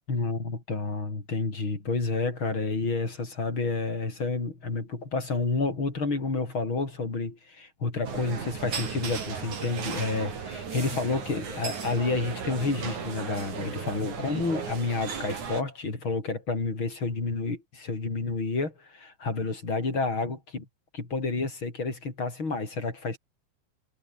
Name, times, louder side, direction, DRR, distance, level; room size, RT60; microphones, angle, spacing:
voice 1, 0.1-20.7 20.9-23.2, left 3 dB, 30° left, 5.7 m, -30 dB
sound 1, 8.0-15.6, right 6 dB, 50° right, 4.8 m, -35 dB
omnidirectional pair, 4.4 m